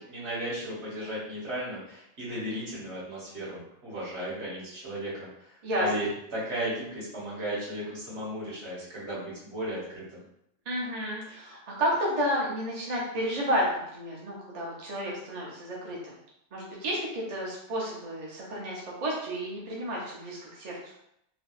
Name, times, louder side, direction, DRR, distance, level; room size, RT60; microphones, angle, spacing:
voice 1, 0.1-10.2, right 1 dB, 65° right, -7 dB, 1.7 m, -35 dB
voice 2, 10.7-13.6 13.9-16.1 16.5-20.7, equal, 40° right, -4 dB, 0.7 m, -31 dB
3.4 x 3.1 x 2.4 m, 0.77 s
omnidirectional pair, 1.3 m